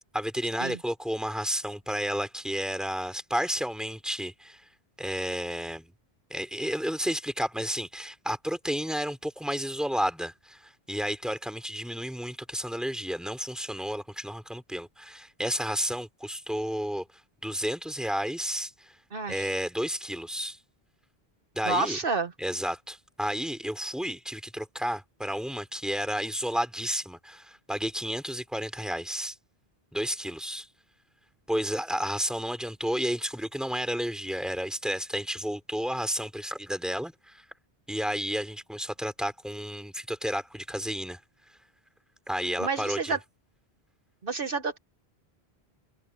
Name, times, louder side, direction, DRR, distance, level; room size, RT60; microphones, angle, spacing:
voice 1, 0.1-4.6 5.0-5.9 6.3-17.0 17.4-18.9 19.3-20.6 21.5-22.0 22.4-29.3 29.9-30.7 31.5-37.4 37.9-41.2 42.3-43.2, equal, ahead, 3.3 m, -31 dB
voice 2, 19.1-19.5 21.6-22.3 42.6-43.2 44.2-44.8, right 3 dB, 60° right, 1.3 m, -29 dB
omnidirectional pair, 1.0 m